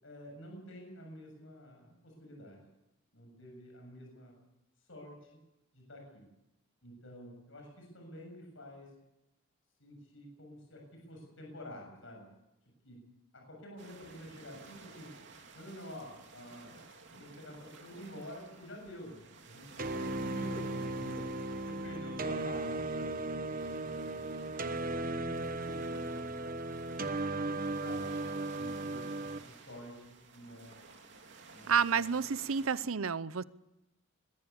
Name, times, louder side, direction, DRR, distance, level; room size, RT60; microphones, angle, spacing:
voice 1, 0.0-2.6 3.1-4.4 4.9-5.2 5.7-6.2 6.8-8.9 9.8-12.3 12.8-13.0 13.3-15.1 15.5-16.8 17.1-21.2 21.7-23.2 23.8-28.1 28.6-30.7 31.5-32.2, equal, 65° left, 1 dB, 7.3 m, -49 dB
sound 1, 13.8-32.8, right 4 dB, 60° right, 3.1 m, -55 dB
sound 2, 19.8-29.4, right 2 dB, 40° right, 1.1 m, -36 dB
voice 2, 31.7-33.4, right 6 dB, 80° right, 17 dB, 0.7 m, -30 dB
21.5 x 15.5 x 8.5 m, 0.92 s
head